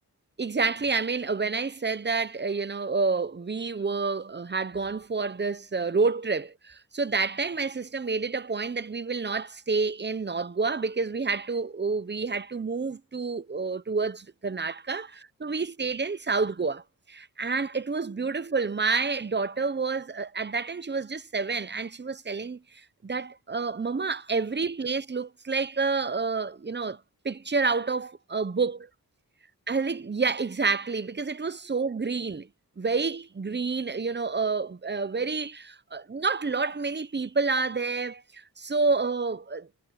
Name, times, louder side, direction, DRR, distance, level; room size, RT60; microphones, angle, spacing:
voice 1, 0.4-16.8 17.1-28.9 29.7-32.5 32.8-39.7, right 4 dB, 30° right, 0.9 m, -29 dB
wide cardioid pair, 85°, 36 cm